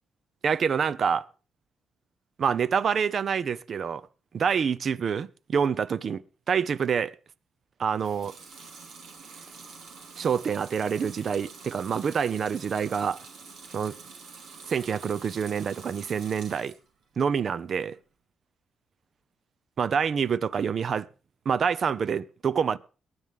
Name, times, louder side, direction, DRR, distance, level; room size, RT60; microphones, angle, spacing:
voice 1, 0.4-1.3 2.4-4.1 4.3-7.2 7.8-8.3 10.2-13.2 13.7-13.9 14.7-16.7 17.2-18.0 19.8-21.1 21.5-22.8, right 6 dB, 55° right, 0.6 m, -27 dB
Water tap faucet / Sink (filling or washing) / Liquid, 7.9-16.9 17.3-18.0, right 5 dB, 80° right, 2.4 m, -47 dB
22.5 x 9.6 x 3.5 m
cardioid pair, 100°, 0 cm